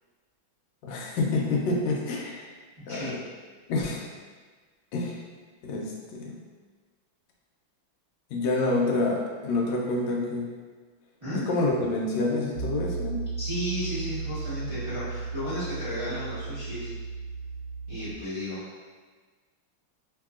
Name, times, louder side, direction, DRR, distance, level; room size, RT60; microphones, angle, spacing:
voice 1, 0.8-2.5 2.9-3.2 3.7-4.1 4.9-5.2 5.6-6.4 8.3-10.5 11.3-13.3, left 2 dB, 75° left, -1 dB, 1.2 m, -28 dB
Piano, 12.5-18.1, right 4 dB, 80° right, 0.9 m, -35 dB
voice 2, 13.4-16.9 17.9-18.6, equal, 25° right, -14 dB, 0.6 m, -33 dB
3.0 x 2.8 x 2.3 m, 1.5 s
omnidirectional pair, 2.2 m